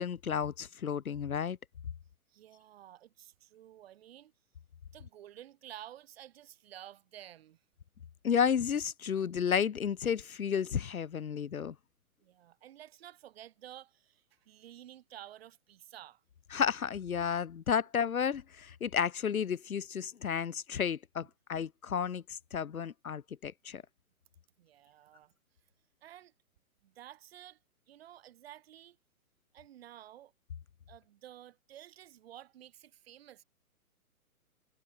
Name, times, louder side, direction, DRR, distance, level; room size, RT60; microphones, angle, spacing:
voice 1, 0.0-1.6 8.2-11.7 16.5-23.8, left 7 dB, 70° left, 0.7 m, -32 dB
voice 2, 2.3-4.3 4.9-7.6 12.2-16.2 21.2-21.3 24.6-25.3 26.0-26.3 26.8-27.6 27.9-29.0 29.5-30.3 30.9-33.4, right 12 dB, 40° right, 6.3 m, -52 dB
figure-of-eight pair, 120°, 44 cm